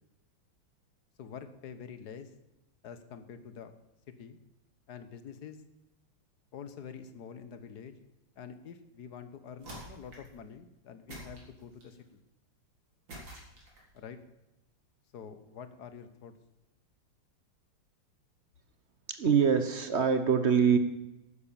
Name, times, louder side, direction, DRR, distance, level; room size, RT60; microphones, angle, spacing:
voice 1, 1.2-2.3 2.8-3.7 4.2-4.4 4.9-5.6 6.5-8.0 8.4-12.2 13.9-14.2 15.1-16.3, left 7 dB, 60° left, 11 dB, 1.5 m, -46 dB
sound 1, 9.6-10.4 11.1-12.0 13.1-14.0, right 1 dB, 75° right, 4.3 m, -47 dB
voice 2, 19.1-20.8, right 6 dB, 45° right, 9 dB, 1.1 m, -24 dB
12.0 x 9.5 x 7.1 m, 0.94 s
omnidirectional pair, 2.1 m